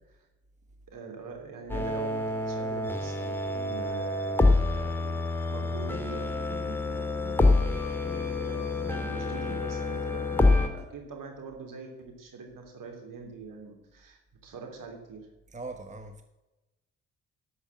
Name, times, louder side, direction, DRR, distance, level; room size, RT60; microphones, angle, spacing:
voice 1, 0.9-7.2 7.9-15.3, right 4 dB, 60° right, 3.1 m, -44 dB
sound 1, 1.7-10.7, left 2 dB, 5° left, 2.4 m, -27 dB
sound 2, 5.9-10.8, left 4 dB, 30° left, 4.1 m, -46 dB
voice 2, 15.5-16.2, right 3 dB, 20° right, 1.2 m, -40 dB
12.0 x 6.3 x 7.4 m
hypercardioid pair, 40°, 37 cm